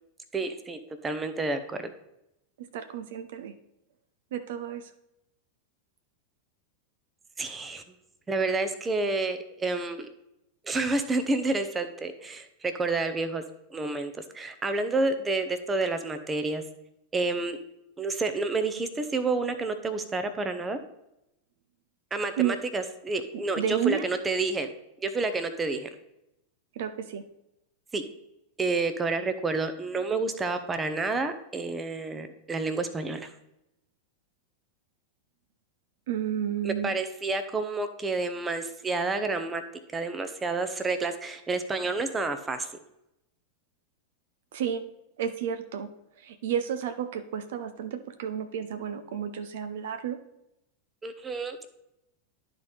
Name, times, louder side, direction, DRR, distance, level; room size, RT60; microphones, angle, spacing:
voice 1, 0.3-1.9 7.4-7.8 8.3-10.1 10.6-13.4 13.7-16.6 17.1-17.6 18.0-20.8 22.1-24.7 25.0-25.9 27.9-28.0 28.6-33.3 36.6-39.6 39.9-42.7 51.0-51.6, right 3 dB, 15° right, 9 dB, 0.7 m, -29 dB
voice 2, 2.6-3.5 4.3-4.9 22.4-22.6 23.3-24.1 26.7-27.2 36.1-36.9 44.5-44.8 45.2-45.9 46.2-50.2, right 9 dB, 55° right, 9 dB, 0.5 m, -31 dB
12.0 x 4.1 x 3.3 m, 0.85 s
figure-of-eight pair, 90°, 0 cm